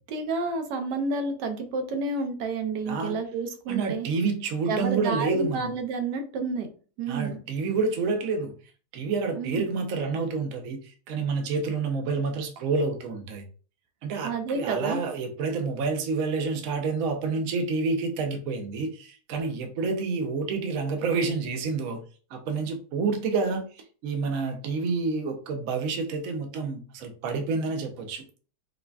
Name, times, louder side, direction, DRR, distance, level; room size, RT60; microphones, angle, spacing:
voice 1, 0.1-4.1 4.7-6.7 7.0-7.4 9.4-9.8 14.2-15.0, right 3 dB, 85° right, 1.2 m, -30 dB
voice 2, 2.9-3.2 3.7-5.7 7.1-8.5 8.9-13.4 14.0-22.0 22.3-28.2, right 4 dB, 65° right, 0.9 m, -28 dB
4.8 x 2.2 x 2.2 m
omnidirectional pair, 1.8 m